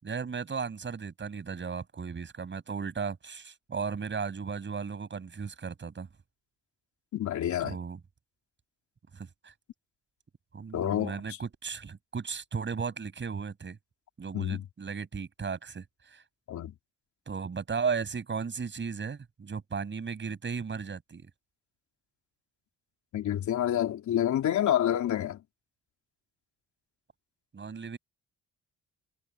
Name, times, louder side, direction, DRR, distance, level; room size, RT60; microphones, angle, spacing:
voice 1, 0.0-6.1 7.6-8.0 9.1-9.5 10.5-13.8 14.2-16.2 17.3-21.3 27.5-28.0, right 5 dB, 40° right, 7.3 m, -35 dB
voice 2, 7.1-7.8 10.7-11.2 14.3-14.6 16.5-16.7 23.1-25.4, left 11 dB, 70° left, 3.7 m, -28 dB
cardioid pair, 90°, 30 cm